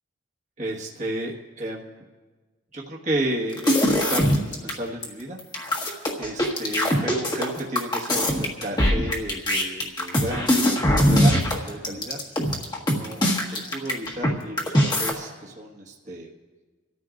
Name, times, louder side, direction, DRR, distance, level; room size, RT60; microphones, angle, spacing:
voice 1, 0.6-2.1 2.7-5.4 5.8-5.9 6.2-12.2 12.9-13.2 13.5-16.3, right 1 dB, 35° right, -3 dB, 1.6 m, -32 dB
sound 1, 3.5-4.7 5.0-5.1 5.4-14.3 14.6-15.1, equal, 20° left, 1.6 m, -21 dB
27.5 x 13.5 x 2.6 m, 1.3 s
head